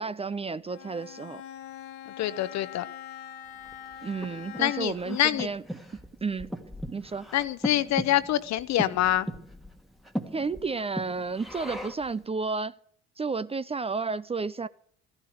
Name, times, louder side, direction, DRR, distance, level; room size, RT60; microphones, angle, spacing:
voice 1, 0.0-1.4 4.0-5.6 6.2-6.6 6.9-7.3 10.3-12.8 13.2-14.7, right 4 dB, 20° right, 0.5 m, -32 dB
Bowed string instrument, 0.7-5.1, left 10 dB, 80° left, 1.4 m, -43 dB
voice 2, 2.2-2.8 4.6-5.5 7.3-9.3, left 13 dB, 60° left, 0.9 m, -26 dB
Breathing, 3.6-12.2, equal, ahead, 1.6 m, -38 dB
14.5 x 11.5 x 6.6 m
supercardioid pair, 75°, 31 cm